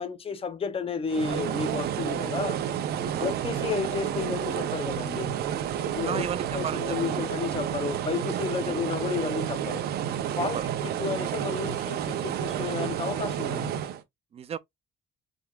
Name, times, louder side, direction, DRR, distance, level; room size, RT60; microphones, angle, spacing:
voice 1, 0.0-2.6 3.2-5.4 5.9-6.3 6.5-9.9 10.4-13.8, left 5 dB, 35° left, 0.8 m, -32 dB
sound 1, 1.1-14.0, right 10 dB, 70° right, 0.8 m, -30 dB
voice 2, 6.0-7.3 8.7-8.8 10.4-10.7 14.3-14.6, right 8 dB, 35° right, 0.5 m, -34 dB
5.2 x 3.5 x 2.4 m
cardioid pair, 110°, 17 cm